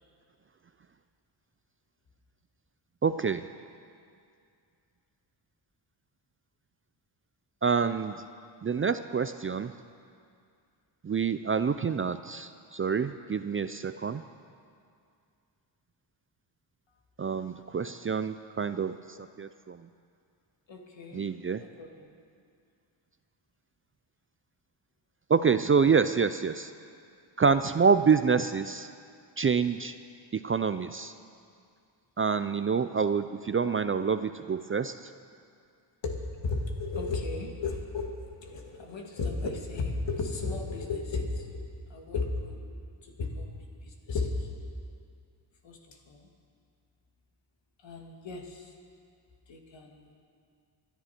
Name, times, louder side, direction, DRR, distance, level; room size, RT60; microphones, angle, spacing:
voice 1, 3.0-3.4 7.6-8.1 8.6-9.7 11.0-14.2 17.2-19.0 19.4-19.8 21.1-21.6 25.3-26.7 27.4-28.9 29.4-29.9 30.4-31.1 32.2-34.9, right 5 dB, 30° right, 11 dB, 0.4 m, -27 dB
voice 2, 20.7-21.3 21.6-22.1 36.0-41.5 41.9-42.6 43.0-43.5 43.8-44.5 45.6-46.3 47.8-48.7 49.5-50.1, left 3 dB, 70° left, 1 dB, 2.3 m, -34 dB
25.5 x 10.5 x 4.4 m, 2.3 s
cardioid pair, 75°, 47 cm